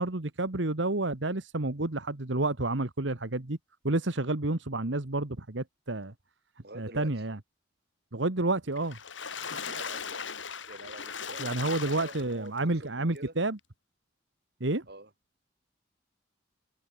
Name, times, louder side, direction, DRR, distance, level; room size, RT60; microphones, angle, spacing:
voice 1, 0.0-3.6 3.8-6.1 6.7-7.4 8.1-9.0 11.4-13.6 14.6-14.8, right 2 dB, 75° right, 1.7 m, -30 dB
voice 2, 6.6-7.1 9.5-10.3 10.7-13.3 14.9-15.1, right 2 dB, 55° right, 7.1 m, -46 dB
Water / Splash splatter, 8.8-12.6 13.2-13.3 13.6-13.7, left 6 dB, 80° left, 3.9 m, -38 dB
head